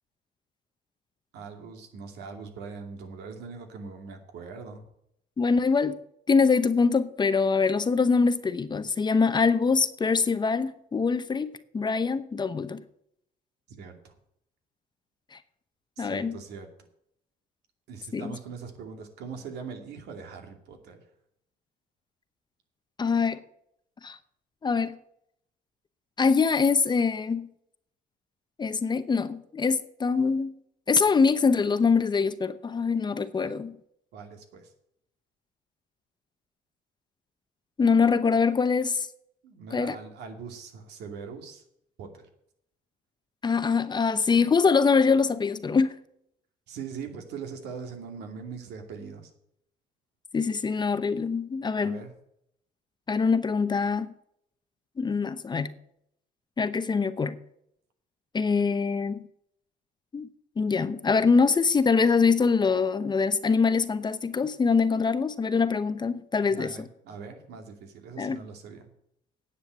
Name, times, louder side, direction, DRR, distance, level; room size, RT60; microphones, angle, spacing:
voice 1, 1.3-4.9 13.8-14.1 16.0-16.7 17.9-21.0 34.1-34.7 39.4-41.6 42.0-42.3 46.7-49.3 51.8-52.1 66.5-68.9, right 5 dB, 80° right, 2.6 m, -41 dB
voice 2, 5.4-6.0 6.3-11.5 11.7-12.8 15.3-15.4 16.0-16.4 18.1-18.4 23.0-23.4 24.0-24.2 24.6-25.0 26.2-27.5 28.6-30.5 30.9-33.8 37.8-39.1 39.7-40.0 43.4-45.9 50.3-52.0 53.1-54.1 55.0-55.7 56.6-57.4 58.3-59.2 60.1-60.3 60.6-66.9 68.2-68.4, left 5 dB, 25° left, 0.8 m, -24 dB
10.0 x 7.9 x 7.8 m
cardioid pair, 110°, 17 cm